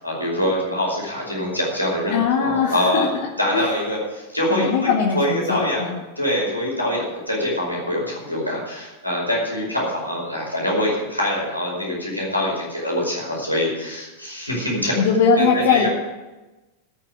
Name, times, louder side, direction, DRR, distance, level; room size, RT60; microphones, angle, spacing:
voice 1, 0.0-3.1 3.4-15.0 15.4-15.9, left 1 dB, 90° left, -3 dB, 5.1 m, -24 dB
voice 2, 2.1-3.3 3.5-3.7 4.5-6.0 15.0-15.9, left 5 dB, 50° left, 0 dB, 1.7 m, -20 dB
14.0 x 6.7 x 9.1 m, 1.1 s
figure-of-eight pair, 90°, 0 cm